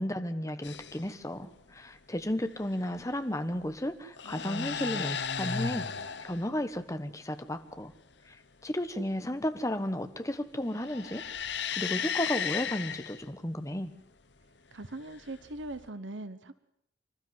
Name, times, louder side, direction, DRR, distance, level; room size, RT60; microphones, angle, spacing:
voice 1, 0.0-5.9 6.2-7.9 8.3-8.4 8.6-11.2 11.8-13.9, left 1 dB, 15° left, 10 dB, 1.3 m, -33 dB
sound 1, 0.6-1.1 2.6-3.0 4.0-6.5 10.6-13.2 15.1-15.9, left 6 dB, 70° left, 1.0 m, -35 dB
voice 2, 14.7-16.5, right 2 dB, 90° right, 13 dB, 1.1 m, -40 dB
26.5 x 12.5 x 9.5 m, 0.74 s
head